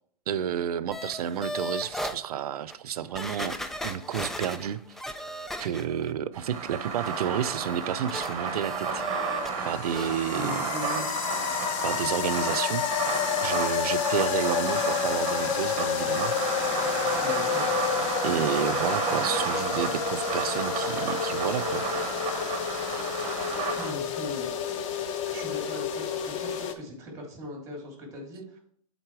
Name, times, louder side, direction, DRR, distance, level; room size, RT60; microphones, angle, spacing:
voice 1, 0.3-4.8 5.6-9.0 9.6-10.7 11.8-12.8 13.4-16.3 18.2-21.8, right 9 dB, 80° right, 15 dB, 0.5 m, -30 dB
sound 1, 0.9-2.2 2.7-2.8 3.1-6.1 6.4-9.5 9.8-10.2 10.5-10.6, equal, ahead, 0.3 m, -37 dB
sound 2, 6.3-23.9, right 5 dB, 35° right, 1.4 m, -32 dB
sound 3, 8.8-26.7, left 8 dB, 55° left, 0.9 m, -30 dB
voice 2, 10.3-11.1 17.2-17.6 23.8-24.7 25.2-28.6, left 1 dB, 15° right, 1 dB, 2.8 m, -39 dB
7.9 x 4.2 x 4.7 m, 0.62 s
hypercardioid pair, 130°, 19 cm